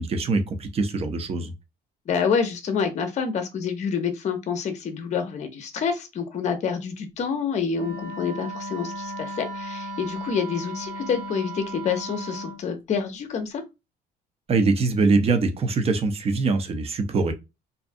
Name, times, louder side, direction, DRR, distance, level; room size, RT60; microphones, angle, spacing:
voice 1, 0.0-1.5 14.5-17.3, right 3 dB, 35° right, 0.5 m, -23 dB
voice 2, 2.1-13.6, left 6 dB, 45° left, 0.6 m, -27 dB
Wind instrument woodwind instrument, 7.7-12.6, equal, 70° right, 1.3 m, -35 dB
2.5 x 2.3 x 2.5 m
cardioid pair, 110°, 17 cm